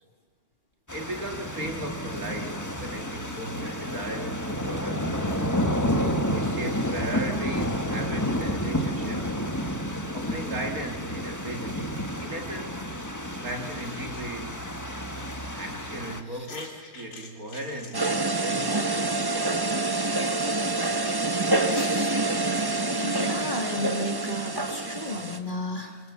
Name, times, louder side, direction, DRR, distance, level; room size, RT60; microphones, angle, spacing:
sound 1, 0.9-16.2, equal, 10° left, 1.5 m, -30 dB
voice 1, 0.9-5.6 6.3-9.4 10.1-13.0 13.4-14.8 15.4-19.7, right 1 dB, 50° right, 3 dB, 2.7 m, -37 dB
sound 2, 14.1-14.3 16.3-18.8 21.4-23.2, left 3 dB, 80° left, 3.6 m, -45 dB
sound 3, 17.9-25.4, right 2 dB, 15° right, 1.1 m, -26 dB
voice 2, 21.6-22.1 23.0-26.0, equal, 25° left, 2 dB, 3.0 m, -33 dB
28.0 x 24.0 x 7.2 m, 1.5 s
omnidirectional pair, 2.0 m